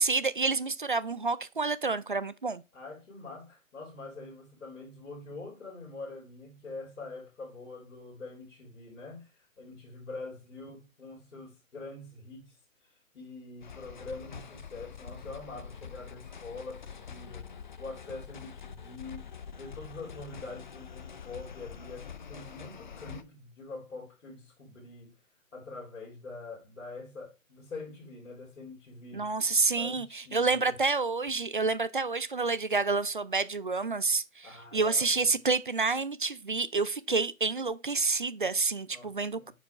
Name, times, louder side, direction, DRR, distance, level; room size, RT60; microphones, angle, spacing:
voice 1, 0.0-2.6 29.1-34.5 34.7-39.5, right 4 dB, 40° right, 0.4 m, -28 dB
voice 2, 2.7-25.1 25.5-29.3 29.7-30.8 34.4-35.3 38.9-39.5, left 3 dB, 65° left, 4.2 m, -45 dB
sound 1, 13.6-23.2, left 6 dB, 35° left, 0.6 m, -45 dB
9.3 x 5.0 x 3.1 m
hypercardioid pair, 155°, 42 cm